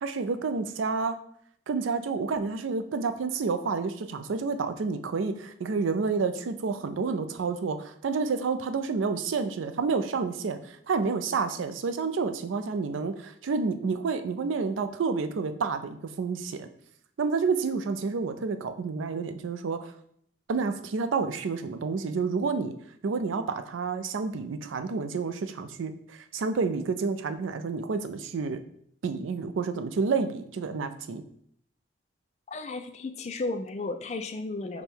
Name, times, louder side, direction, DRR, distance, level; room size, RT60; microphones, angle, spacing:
voice 1, 0.0-1.2 1.7-16.7 17.2-19.9 20.5-22.7 23.0-28.6 29.0-31.2, right 4 dB, 85° right, 9 dB, 0.4 m, -29 dB
voice 2, 32.5-34.8, left 3 dB, 35° left, 8 dB, 0.3 m, -34 dB
5.2 x 2.2 x 4.4 m, 0.66 s
head